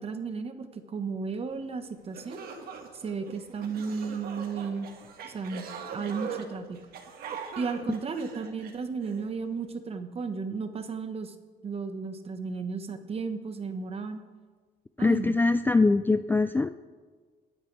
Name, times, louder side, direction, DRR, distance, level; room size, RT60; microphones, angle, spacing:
voice 1, 0.0-2.4 2.9-4.9 5.3-6.8 7.6-11.3 11.6-14.2 15.0-15.4, right 5 dB, 35° right, 8 dB, 1.3 m, -34 dB
sound 1, 1.7-1.8 2.1-9.2, right 6 dB, 65° right, 1.8 m, -41 dB
voice 2, 15.0-16.7, left 3 dB, 10° left, 11 dB, 0.3 m, -23 dB
23.0 x 9.6 x 3.4 m, 1.5 s
cardioid pair, 110°, 17 cm